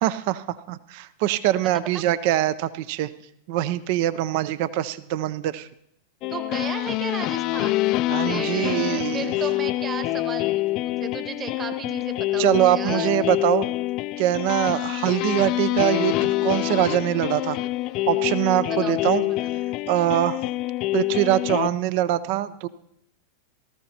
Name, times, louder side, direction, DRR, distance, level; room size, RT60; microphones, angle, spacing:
voice 1, 0.0-3.1 3.5-5.7 8.1-9.3 12.4-13.7 14.2-17.6 18.1-19.2 19.9-20.4 20.9-22.7, right 13 dB, 55° right, 16 dB, 0.4 m, -23 dB
sound 1, 6.2-21.7, left 18 dB, 45° left, 0.3 m, -26 dB
voice 2, 6.3-7.9 8.2-13.3 14.6-14.9 18.7-19.2, right 6 dB, 30° right, 8 dB, 1.3 m, -35 dB
17.5 x 14.0 x 2.8 m, 0.75 s
hypercardioid pair, 100°, 0 cm